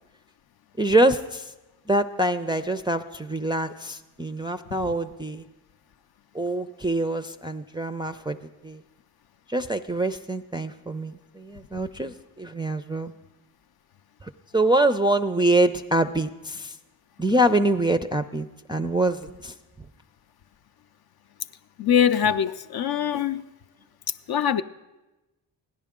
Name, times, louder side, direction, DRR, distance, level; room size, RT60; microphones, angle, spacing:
voice 1, 0.8-1.5 1.9-5.4 6.3-8.8 9.5-13.1 14.2-16.8 17.2-19.5, right 1 dB, 10° right, 0.3 m, -25 dB
voice 2, 21.8-23.5 24.3-24.6, left 8 dB, 50° left, 0.5 m, -22 dB
16.0 x 10.5 x 3.6 m
supercardioid pair, 45°, 48 cm